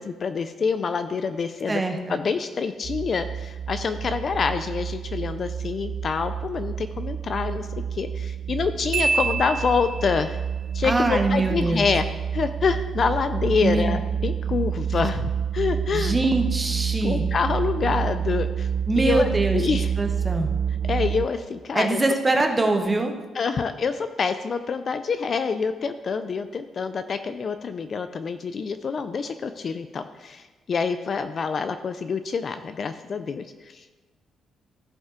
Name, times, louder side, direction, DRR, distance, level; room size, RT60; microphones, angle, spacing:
voice 1, 0.0-1.8 2.1-10.4 10.7-12.1 12.3-16.2 17.0-18.7 19.0-19.3 19.5-19.9 20.9-22.0 23.3-33.8, left 5 dB, 35° left, 10 dB, 0.4 m, -26 dB
voice 2, 1.7-2.2 10.8-11.9 13.6-14.0 15.9-17.2 18.9-19.7 20.0-20.5 21.7-23.3, right 2 dB, 15° right, 4 dB, 0.8 m, -23 dB
sound 1, 2.8-21.2, right 8 dB, 50° right, 0.5 m, -29 dB
Marimba xylophone, 8.9-10.3, right 4 dB, 80° right, 2.7 m, -26 dB
14.5 x 5.3 x 3.8 m, 1.3 s
cardioid pair, 170°, 0 cm